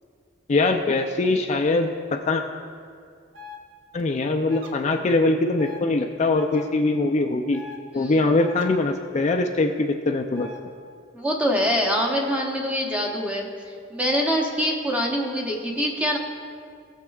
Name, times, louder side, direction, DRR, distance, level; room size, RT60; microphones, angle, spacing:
voice 1, 0.5-1.9 2.3-2.4 3.9-7.6 7.9-10.5, left 2 dB, 35° left, 4 dB, 0.4 m, -22 dB
sound 1, 3.3-3.6 4.5-4.7 5.6-5.8 6.4-6.6 7.5-7.8 8.4-8.7 10.3-10.6 12.0-12.2, left 3 dB, 70° right, 0.9 m, -41 dB
voice 2, 11.1-16.2, equal, 5° right, -1 dB, 0.9 m, -25 dB
17.5 x 7.3 x 2.4 m, 2.2 s
head